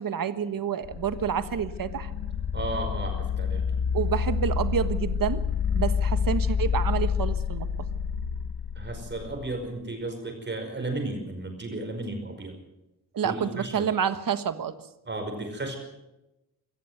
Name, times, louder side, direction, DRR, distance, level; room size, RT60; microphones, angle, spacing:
voice 1, 0.0-2.1 3.9-5.4 5.7-7.9 13.1-14.9, right 8 dB, 60° right, 11 dB, 1.5 m, -28 dB
sound 1, 0.8-9.6, left 6 dB, 80° left, 1.5 m, -28 dB
voice 2, 2.5-3.6 8.8-12.5 13.2-13.9 15.1-15.8, right 2 dB, 30° right, 4 dB, 5.3 m, -34 dB
25.5 x 14.5 x 8.0 m, 0.95 s
wide cardioid pair, 160°, 38 cm